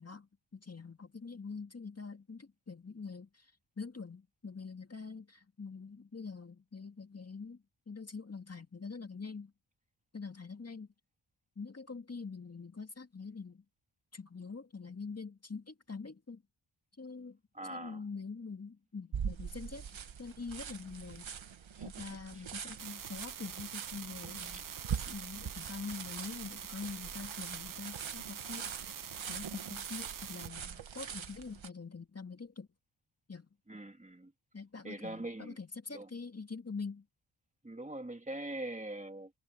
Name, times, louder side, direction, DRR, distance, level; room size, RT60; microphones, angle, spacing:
voice 1, 0.0-3.5 3.8-9.5 10.1-10.9 11.6-13.6 14.1-16.4 17.0-17.4 17.7-21.3 21.9-24.6 25.1-29.0 29.3-32.7 33.3-33.5 34.5-37.1, left 4 dB, 30° left, 2.0 m, -45 dB
voice 2, 17.5-18.0 21.8-21.9 33.7-34.3 34.8-35.6 35.9-36.1 37.6-39.3, right 1 dB, 15° right, 2.3 m, -42 dB
sound 1, 19.1-31.7, right 7 dB, 75° right, 1.7 m, -43 dB
sound 2, 22.8-30.5, right 8 dB, 45° right, 0.6 m, -45 dB
wide cardioid pair, 85°, 46 cm